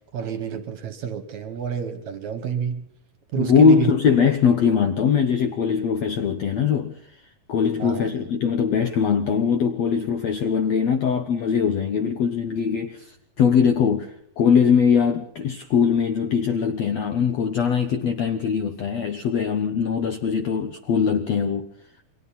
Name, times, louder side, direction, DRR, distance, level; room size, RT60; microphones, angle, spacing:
voice 1, 0.1-2.8 3.3-3.9 7.8-8.2, right 8 dB, 60° right, 2.3 m, -28 dB
voice 2, 3.4-7.2 7.5-21.7, left 6 dB, 70° left, 1.6 m, -21 dB
29.0 x 22.5 x 4.2 m
omnidirectional pair, 4.5 m